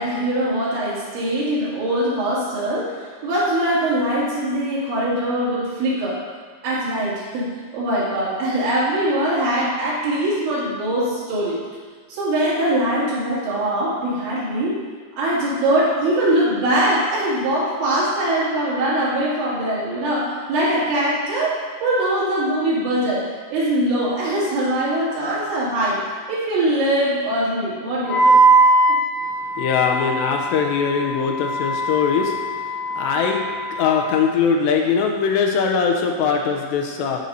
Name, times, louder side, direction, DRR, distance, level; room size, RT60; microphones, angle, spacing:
voice 1, 0.0-6.2 6.6-11.6 12.1-14.8 15.2-23.2 23.5-26.0 26.3-28.4, right 1 dB, 75° right, -8 dB, 4.8 m, -22 dB
Wind instrument woodwind instrument, 28.1-34.2, right 2 dB, 60° left, 2.0 m, -20 dB
voice 2, 29.2-37.3, left 6 dB, 85° left, 2 dB, 2.7 m, -21 dB
14.5 x 6.4 x 2.7 m, 1.5 s
omnidirectional pair, 5.3 m